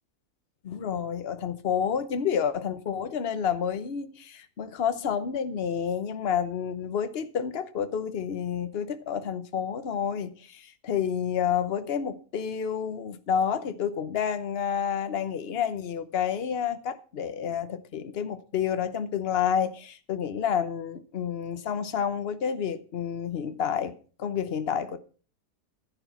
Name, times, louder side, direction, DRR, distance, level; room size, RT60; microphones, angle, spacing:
voice 1, 0.6-25.0, left 7 dB, 45° left, 1.1 m, -29 dB
11.5 x 10.0 x 5.6 m
omnidirectional pair, 1.6 m